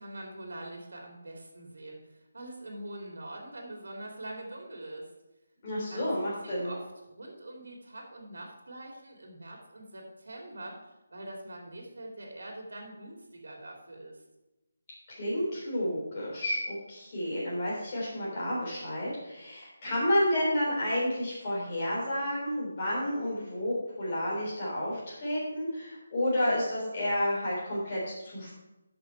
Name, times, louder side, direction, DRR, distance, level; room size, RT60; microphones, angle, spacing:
voice 1, 0.0-5.1 5.8-6.8 7.1-14.2, right 1 dB, 75° right, 1 dB, 2.5 m, -44 dB
voice 2, 5.6-6.7 15.1-28.5, left 1 dB, 25° left, -6 dB, 3.4 m, -30 dB
11.5 x 6.1 x 4.5 m, 0.97 s
hypercardioid pair, 180°, 0 cm